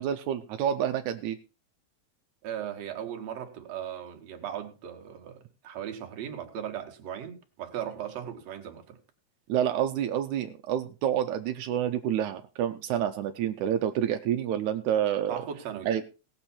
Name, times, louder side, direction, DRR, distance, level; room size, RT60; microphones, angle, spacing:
voice 1, 0.0-1.4 9.5-15.4 15.9-16.0, right 10 dB, 85° right, 2.2 m, -28 dB
voice 2, 2.4-9.0 15.3-15.9, right 9 dB, 65° right, 2.6 m, -37 dB
18.0 x 7.1 x 4.3 m
omnidirectional pair, 3.3 m